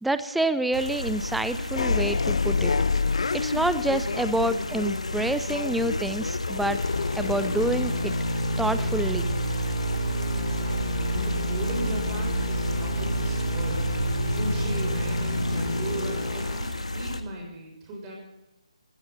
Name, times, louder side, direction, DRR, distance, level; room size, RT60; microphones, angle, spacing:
voice 1, 0.0-2.8 3.3-6.8 7.1-8.1 8.6-9.3, right 1 dB, ahead, 12 dB, 0.5 m, -27 dB
sound 1, 0.7-17.2, left 2 dB, 85° left, 1.6 m, -33 dB
sound 2, 1.7-10.3, left 4 dB, 65° left, 0.5 m, -29 dB
sound 3, 6.7-16.7, right 1 dB, 40° left, 4.0 m, -29 dB
voice 2, 10.3-13.8 14.2-18.2, right 1 dB, 20° right, -1 dB, 6.5 m, -36 dB
16.5 x 15.0 x 4.0 m, 0.96 s
figure-of-eight pair, 145°, 3 cm